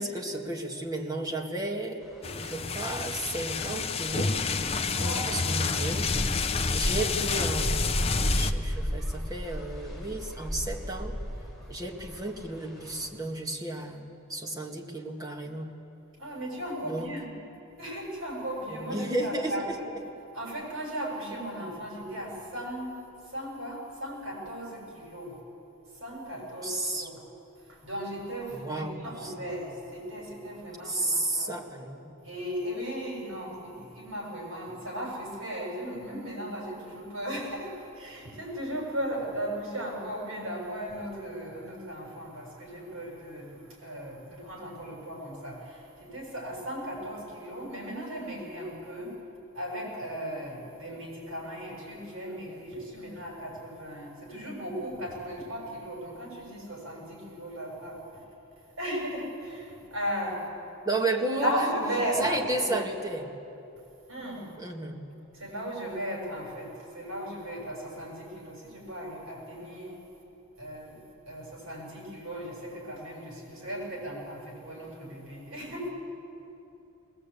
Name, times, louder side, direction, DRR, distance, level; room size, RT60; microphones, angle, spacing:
voice 1, 0.0-4.4 5.0-6.1 6.7-11.2 11.7-15.8 16.8-17.1 18.7-19.8 26.6-27.1 28.5-29.3 30.8-32.2 60.8-61.6 62.2-63.3 64.6-65.1, right 2 dB, 20° right, -1 dB, 1.9 m, -33 dB
sound 1, 2.0-13.1, equal, ahead, 4.0 m, -35 dB
sound 2, 2.2-8.5, left 4 dB, 30° left, 0.7 m, -29 dB
voice 2, 4.9-5.4 16.2-17.3 17.8-19.9 20.3-23.0 23.2-25.4 25.9-27.2 27.6-31.5 32.2-49.2 49.5-58.2 58.8-60.5 61.3-62.7 64.1-64.5 65.3-70.0 70.6-75.9, equal, 70° right, -1 dB, 7.4 m, -36 dB
21.0 x 19.5 x 8.5 m, 2.9 s
head